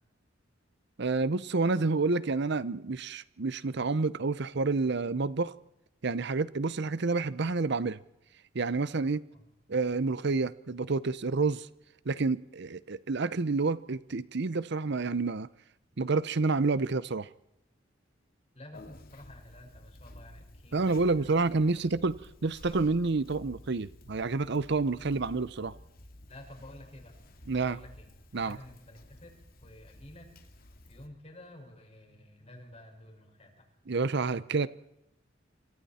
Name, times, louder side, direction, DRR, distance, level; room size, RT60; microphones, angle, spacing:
voice 1, 1.0-5.5 6.0-8.0 8.5-9.2 9.7-11.7 12.1-15.5 16.0-17.3 20.7-25.7 27.5-27.8 28.3-28.6 33.9-34.7, right 3 dB, 60° right, 17 dB, 0.7 m, -29 dB
voice 2, 18.5-21.3 21.6-21.8 26.3-27.1 27.7-28.1 28.4-30.3 30.9-33.7, left 1 dB, 35° left, 3 dB, 5.5 m, -51 dB
Conversation, 18.7-31.1, left 1 dB, 50° left, 2.4 m, -52 dB
27.5 x 25.0 x 4.3 m, 0.83 s
head